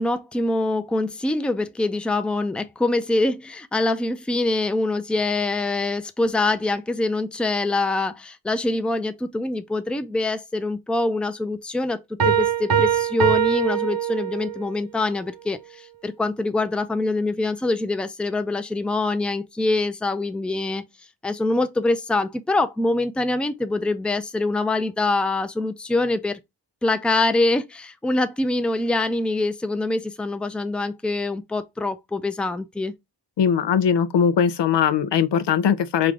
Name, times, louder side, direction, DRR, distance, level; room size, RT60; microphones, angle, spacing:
voice 1, 0.0-12.0 12.3-20.8 21.2-26.4 26.8-32.9, left 2 dB, 5° left, 0.4 m, -24 dB
Piano, 12.2-14.7, right 9 dB, 55° right, 0.7 m, -22 dB
voice 2, 33.4-36.1, left 7 dB, 75° left, 0.5 m, -20 dB
3.3 x 2.5 x 3.6 m
cardioid pair, 45°, 42 cm